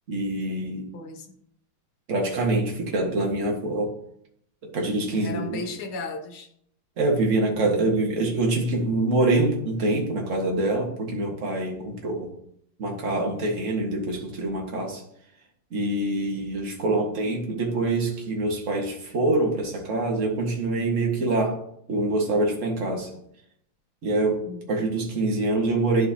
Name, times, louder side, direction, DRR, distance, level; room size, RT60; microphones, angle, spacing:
voice 1, 0.1-0.9 2.1-3.9 4.7-5.6 7.0-12.3 12.8-15.0 15.7-21.6 21.9-23.1 24.0-26.1, right 2 dB, 40° right, 0 dB, 1.7 m, -25 dB
voice 2, 0.9-1.3 5.1-6.5 24.5-24.9, left 3 dB, 75° left, 5 dB, 1.9 m, -35 dB
11.0 x 4.8 x 2.9 m, 0.71 s
omnidirectional pair, 2.4 m